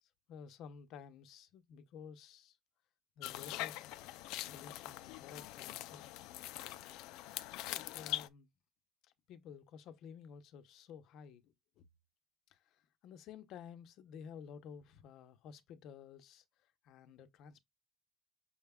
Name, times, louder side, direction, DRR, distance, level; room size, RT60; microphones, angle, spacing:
voice 1, 0.0-2.6 3.2-3.9 4.5-6.0 7.6-8.5 9.0-11.9 12.5-17.6, left 7 dB, 55° left, 0.7 m, -53 dB
sound 1, 3.2-8.3, left 16 dB, 85° left, 0.4 m, -43 dB
6.2 x 2.3 x 3.5 m
cardioid pair, 175°, 0 cm